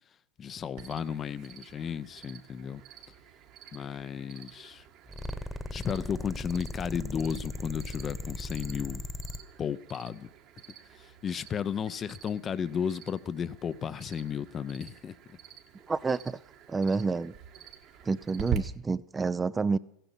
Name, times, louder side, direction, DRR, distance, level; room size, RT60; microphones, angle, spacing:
voice 1, 0.4-2.8 3.7-4.8 5.7-9.0 9.6-10.3 11.0-15.1, left 7 dB, 30° left, 0.7 m, -34 dB
Cricket, 0.8-18.6, right 10 dB, 55° right, 1.8 m, -46 dB
sound 1, 5.1-9.4, left 2 dB, 5° left, 1.3 m, -38 dB
voice 2, 15.9-16.4 16.7-17.3 18.0-19.8, right 4 dB, 20° right, 0.5 m, -29 dB
14.5 x 10.0 x 7.1 m
hypercardioid pair, 95°, 0 cm